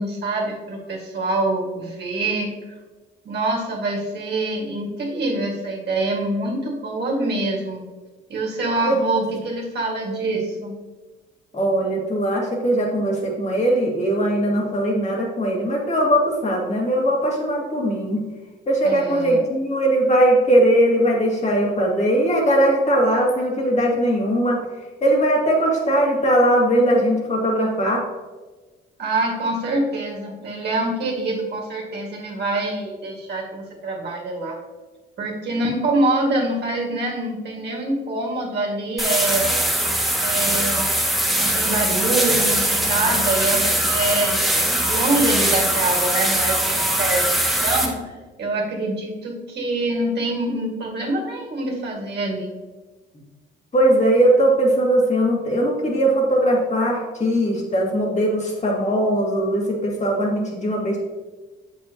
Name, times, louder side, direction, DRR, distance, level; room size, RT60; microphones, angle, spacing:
voice 1, 0.0-2.5 3.2-7.8 8.3-10.7 18.8-19.4 29.0-34.6 35.2-39.5 40.2-40.8 41.3-44.4 44.9-48.1 48.4-52.5, right 2 dB, 55° right, -2 dB, 2.1 m, -25 dB
voice 2, 8.8-9.4 11.5-18.2 18.7-24.6 25.0-28.0 53.7-61.0, right 1 dB, 35° left, -1 dB, 2.2 m, -20 dB
sound 1, 39.0-47.8, right 1 dB, ahead, 1.7 m, -21 dB
7.4 x 6.6 x 3.0 m, 1.3 s
cardioid pair, 90°, 20 cm